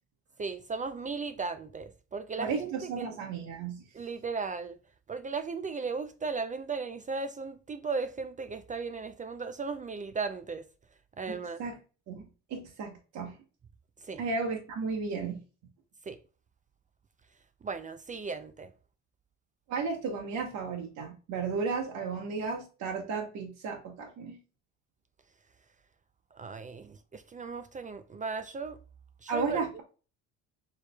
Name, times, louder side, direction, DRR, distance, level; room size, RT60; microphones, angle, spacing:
voice 1, 0.4-3.1 3.9-4.8 5.1-10.6 11.2-11.6 14.1-14.2 16.1-16.2 17.6-18.7 26.3-28.8 29.2-29.8, right 4 dB, 25° right, 0.4 m, -36 dB
voice 2, 2.4-3.8 11.3-11.8 12.1-12.2 12.5-13.4 14.2-15.4 19.7-24.4 29.3-29.8, right 4 dB, 60° right, 1.3 m, -34 dB
6.5 x 3.3 x 2.2 m
supercardioid pair, 85°, 33 cm